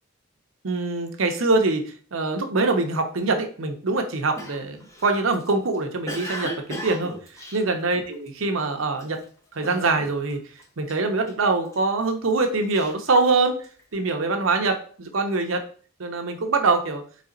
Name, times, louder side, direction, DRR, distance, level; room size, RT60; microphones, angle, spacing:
voice 1, 0.6-7.1 7.5-9.2 9.6-10.4 10.8-13.6 13.9-15.6 16.0-17.0, right 3 dB, 85° right, 5 dB, 0.8 m, -24 dB
Cough, 4.4-8.4 8.9-9.2 9.6-10.3 10.6-11.8 12.3-13.8, equal, 15° left, 0.8 m, -37 dB
4.1 x 3.3 x 3.9 m, 0.42 s
head